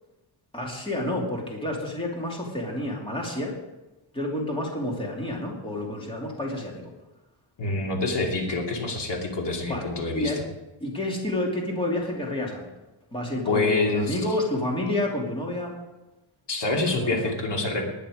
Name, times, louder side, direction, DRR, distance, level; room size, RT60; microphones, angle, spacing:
voice 1, 0.5-3.5 4.1-6.9 9.7-10.4 10.8-12.7 13.1-15.7 17.0-17.3, left 1 dB, 10° left, -2 dB, 2.8 m, -29 dB
voice 2, 7.6-10.3 13.5-14.2 16.5-17.9, left 3 dB, 60° left, 0 dB, 2.9 m, -26 dB
19.5 x 10.0 x 5.1 m, 1.0 s
wide cardioid pair, 165°, 47 cm